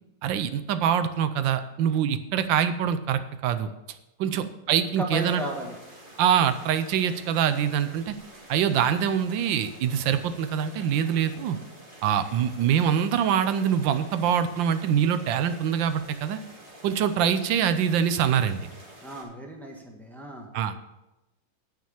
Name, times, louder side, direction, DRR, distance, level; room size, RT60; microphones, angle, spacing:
voice 1, 0.2-3.7 4.2-5.4 6.2-8.1 8.5-11.6 12.0-16.4 16.8-18.6 20.5-20.9, right 8 dB, 85° right, 10 dB, 1.4 m, -24 dB
voice 2, 5.0-5.8 19.0-20.5, equal, ahead, 0 dB, 1.4 m, -35 dB
sound 1, 5.2-19.2, right 1 dB, 25° right, 2.4 m, -48 dB
10.0 x 5.9 x 7.1 m, 0.98 s
omnidirectional pair, 2.0 m